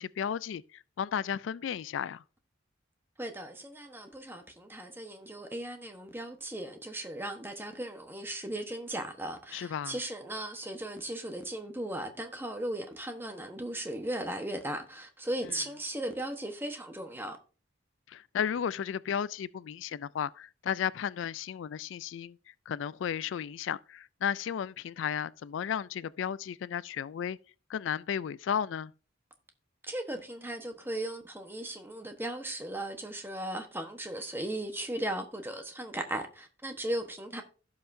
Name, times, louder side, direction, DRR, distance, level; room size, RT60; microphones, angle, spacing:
voice 1, 0.0-2.2 9.5-10.0 18.1-27.4 27.7-28.9, left 8 dB, 75° left, 0.3 m, -34 dB
voice 2, 3.2-17.4 29.9-37.4, right 1 dB, 10° right, 1.1 m, -37 dB
16.0 x 5.6 x 2.7 m
head